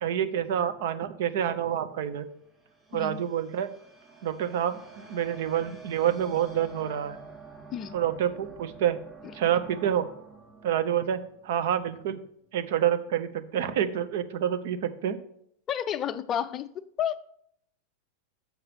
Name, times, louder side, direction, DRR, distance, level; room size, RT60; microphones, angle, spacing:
voice 1, 0.0-2.3 2.9-3.7 4.2-7.2 7.9-9.0 9.3-10.1 10.6-12.2 12.5-15.2, right 10 dB, 55° right, 11 dB, 0.6 m, -28 dB
sound 1, 1.8-12.1, right 2 dB, 5° right, 3.2 m, -49 dB
voice 2, 2.9-3.3 7.7-7.9 15.7-17.3, left 9 dB, 30° left, 13 dB, 0.4 m, -31 dB
7.2 x 5.7 x 5.3 m, 0.68 s
figure-of-eight pair, 90°, 0 cm